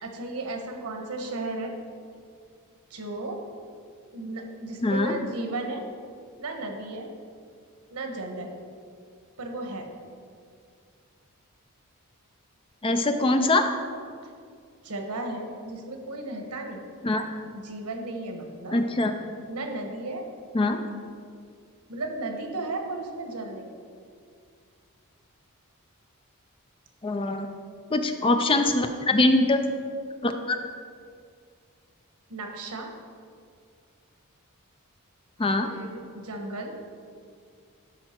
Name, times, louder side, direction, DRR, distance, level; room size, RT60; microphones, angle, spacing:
voice 1, 0.0-1.7 2.9-3.4 4.1-5.8 6.4-7.1 7.9-8.5 9.4-9.9 14.8-16.8 17.5-18.8 19.5-20.3 21.9-23.7 32.3-32.9 35.6-36.7, right 2 dB, 90° right, 3 dB, 1.2 m, -34 dB
voice 2, 4.8-5.1 12.8-13.7 17.0-17.2 18.7-19.1 20.5-20.8 27.0-27.5 27.9-29.6 30.2-30.6 35.4-35.7, left 2 dB, 25° left, 7 dB, 0.5 m, -23 dB
12.5 x 5.0 x 4.5 m, 2.2 s
head